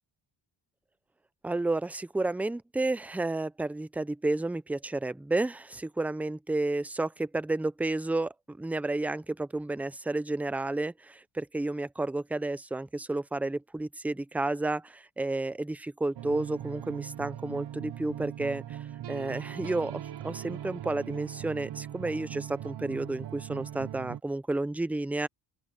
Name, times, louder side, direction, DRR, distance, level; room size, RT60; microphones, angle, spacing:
voice 1, 1.4-18.8 19.1-25.3, right 2 dB, 5° right, 0.5 m, -31 dB
sound 1, 16.1-24.2, right 11 dB, 60° right, 0.9 m, -40 dB
open air
cardioid pair, 110°, 45 cm